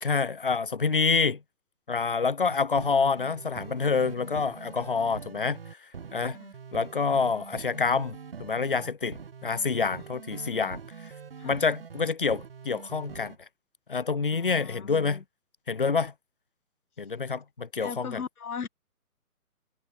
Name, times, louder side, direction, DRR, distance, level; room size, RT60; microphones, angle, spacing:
voice 1, 0.0-1.4 1.9-5.6 6.1-6.4 6.7-10.8 11.4-13.4 13.9-15.2 15.7-16.1 17.0-18.2, left 5 dB, 40° left, 0.4 m, -27 dB
sound 1, 2.5-13.4, right 6 dB, 40° right, 0.5 m, -44 dB
voice 2, 14.3-15.2 17.8-18.7, left 6 dB, 75° left, 1.2 m, -39 dB
figure-of-eight pair, 150°, 45 cm